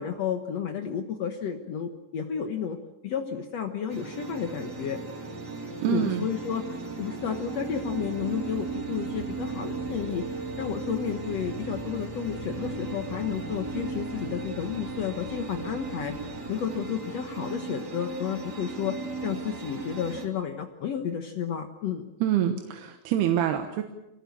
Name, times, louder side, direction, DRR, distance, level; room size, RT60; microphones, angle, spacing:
voice 1, 0.0-2.8 3.0-5.0 5.8-19.0 19.2-22.0, left 8 dB, 85° left, 5 dB, 1.4 m, -32 dB
sound 1, 3.9-20.2, right 4 dB, 25° right, 2.8 m, -36 dB
voice 2, 5.8-6.3 22.2-23.8, right 10 dB, 70° right, 6 dB, 3.0 m, -26 dB
sound 2, 7.8-16.5, right 1 dB, 50° right, 5.2 m, -47 dB
25.0 x 18.5 x 8.5 m, 0.96 s
omnidirectional pair, 5.1 m